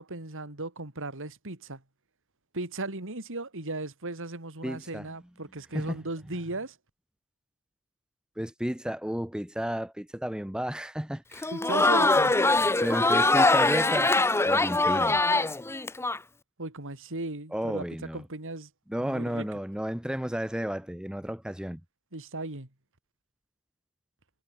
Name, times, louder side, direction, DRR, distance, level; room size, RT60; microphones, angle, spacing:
voice 1, 0.0-1.8 2.5-6.8 11.5-12.3 16.6-17.9 18.1-18.7 19.0-19.4 22.1-22.7, right 2 dB, 60° right, 3.3 m, -36 dB
voice 2, 4.6-5.1 5.7-6.0 8.4-11.5 12.8-14.2 14.4-15.2 17.5-18.2 18.9-21.8, equal, 5° right, 1.0 m, -32 dB
Crowd, 11.3-16.2, left 2 dB, 10° left, 0.6 m, -23 dB
head